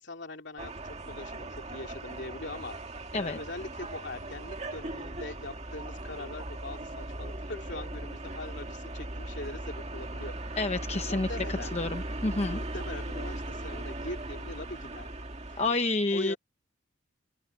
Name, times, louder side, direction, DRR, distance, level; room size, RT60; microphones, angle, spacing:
voice 1, 0.0-2.9 3.2-10.6 11.1-11.8 12.5-15.1 15.5-15.6 16.1-16.4, left 2 dB, 60° left, 3.0 m, -41 dB
sound 1, 0.6-15.7, right 1 dB, 35° right, 2.0 m, -38 dB
voice 2, 10.6-12.6 15.6-16.3, left 2 dB, 30° left, 0.9 m, -29 dB
open air
head